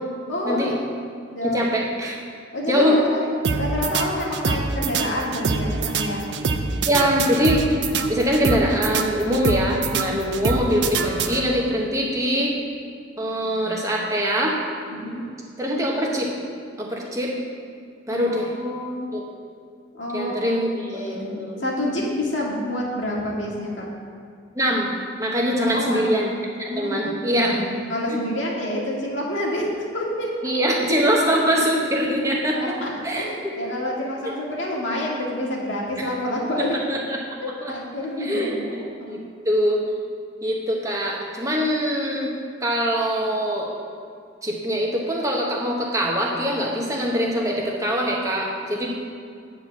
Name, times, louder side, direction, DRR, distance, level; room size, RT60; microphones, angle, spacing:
voice 1, 0.3-0.7 1.3-1.6 2.5-3.2 3.6-6.2 14.9-15.2 18.1-19.1 19.9-21.3 21.6-23.9 25.6-26.1 26.7-27.6 27.9-30.3 32.5-36.8 37.4-39.2 48.8-48.9, left 1 dB, 80° left, -3 dB, 2.0 m, -28 dB
voice 2, 1.4-2.2 2.7-3.0 6.8-7.6 8.1-12.5 13.2-14.6 15.6-16.3 16.8-17.3 18.1-18.5 19.1-19.2 20.1-21.6 24.5-27.7 30.4-32.7 33.0-33.5 34.2-34.3 36.0-36.1 36.6-37.2 37.6-37.7 38.2-38.6 39.1-39.2 39.4-39.9 40.4-42.3 42.6-43.7 44.4-48.9, equal, 15° right, -2 dB, 1.2 m, -23 dB
sound 1, 3.4-11.8, right 4 dB, 65° right, 0.5 m, -25 dB
9.7 x 4.5 x 7.2 m, 2.2 s
head